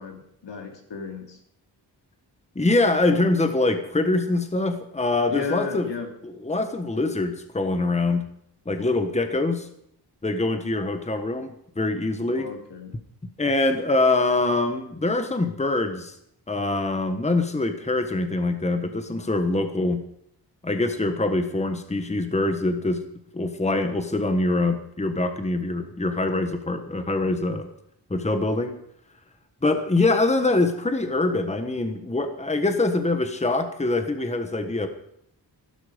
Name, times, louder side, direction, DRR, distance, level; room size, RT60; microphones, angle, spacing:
voice 1, 0.0-1.4 5.3-6.1 12.3-13.0, left 5 dB, 85° left, 3 dB, 3.0 m, -34 dB
voice 2, 2.5-5.9 6.2-8.3 8.6-9.7 10.2-12.5 13.4-16.1 16.5-20.0 20.6-23.0 23.3-27.7 28.1-28.7 29.6-34.9, left 2 dB, 15° left, 7 dB, 1.3 m, -24 dB
15.5 x 12.0 x 5.1 m, 0.74 s
wide cardioid pair, 120°, 42 cm